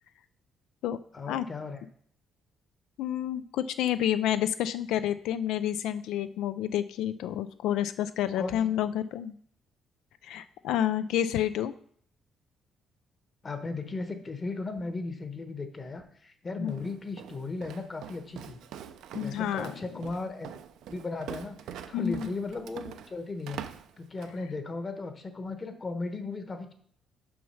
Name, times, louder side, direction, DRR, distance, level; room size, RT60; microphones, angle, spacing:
voice 1, 1.1-1.9 8.4-8.7 13.4-18.6 19.1-20.5 20.9-23.6 24.0-26.7, left 3 dB, 25° left, 7 dB, 1.0 m, -36 dB
voice 2, 3.0-9.4 10.2-11.7 16.6-16.8 19.1-19.7 21.9-22.3, left 11 dB, 90° left, 13 dB, 0.3 m, -29 dB
Walk footsteps, 16.7-24.4, right 9 dB, 85° right, 0.5 m, -44 dB
6.2 x 5.8 x 5.6 m, 0.62 s
cardioid pair, 145°, 0 cm